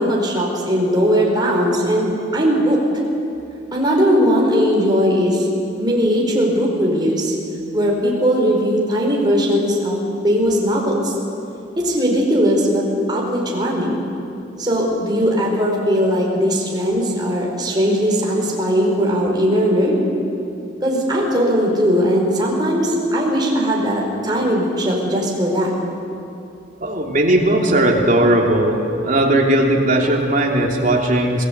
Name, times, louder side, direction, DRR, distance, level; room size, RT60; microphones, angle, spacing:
voice 1, 0.0-2.8 3.7-5.5 5.8-7.3 7.7-10.0 10.2-11.1 11.8-13.9 14.6-20.0 20.8-25.7, equal, 20° right, -2 dB, 4.6 m, -18 dB
voice 2, 26.8-31.4, right 1 dB, 40° right, 0 dB, 3.0 m, -17 dB
26.5 x 18.0 x 8.2 m, 2.7 s
head